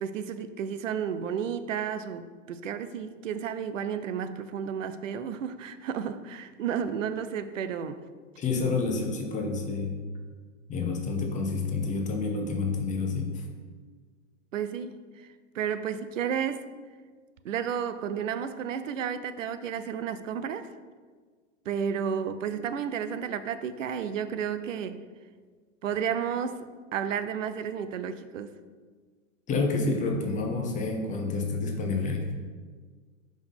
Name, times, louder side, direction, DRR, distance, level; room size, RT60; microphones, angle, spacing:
voice 1, 0.0-8.0 14.5-15.3 15.5-16.7 17.4-20.7 21.7-25.0 25.8-28.5, right 8 dB, 85° right, 11 dB, 0.5 m, -32 dB
voice 2, 8.4-10.0 10.7-13.5 29.5-32.3, left 3 dB, 20° left, 2 dB, 0.8 m, -29 dB
5.0 x 3.7 x 5.5 m, 1.5 s
hypercardioid pair, 120°, 37 cm